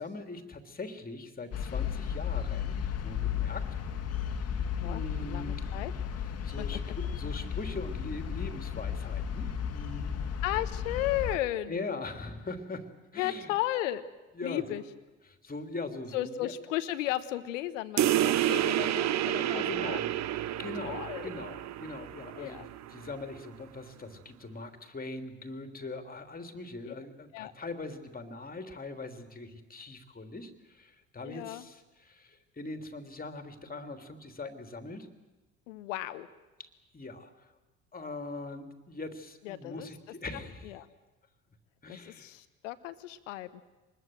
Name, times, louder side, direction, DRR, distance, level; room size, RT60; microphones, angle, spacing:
voice 1, 0.0-3.7 4.8-5.7 6.4-10.2 11.7-13.5 14.3-14.8 15.3-16.5 18.8-18.9 19.3-20.1 20.6-35.1 36.6-36.7 36.9-37.5 37.9-40.7 41.8-42.3, left 3 dB, 20° left, 7 dB, 3.1 m, -41 dB
sound 1, 1.5-11.4, left 8 dB, 40° left, 2.0 m, -34 dB
voice 2, 4.8-5.9 6.6-6.8 10.4-11.8 13.2-14.0 14.4-14.8 16.1-20.0 20.8-21.3 22.4-22.7 26.8-26.9 27.3-27.5 31.2-31.7 35.7-36.3 39.4-39.9 40.6-40.9 41.9-43.5, left 14 dB, 70° left, 13 dB, 1.1 m, -35 dB
sound 2, 18.0-23.0, right 12 dB, 45° right, 0.9 m, -29 dB
25.5 x 20.5 x 7.8 m, 1.2 s
figure-of-eight pair, 60°, 39 cm